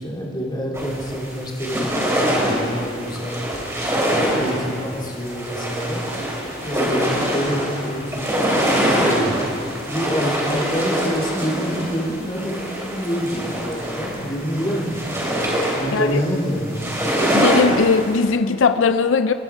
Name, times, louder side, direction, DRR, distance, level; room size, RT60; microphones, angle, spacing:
voice 1, 0.0-3.4 3.9-6.0 6.6-9.3 9.9-15.3 15.7-16.9, equal, 25° left, -3 dB, 2.5 m, -27 dB
sound 1, 0.7-18.1, equal, 15° right, 3.2 m, -24 dB
voice 2, 17.3-19.3, left 5 dB, 85° left, 11 dB, 0.5 m, -18 dB
28.5 x 10.0 x 4.7 m, 2.4 s
head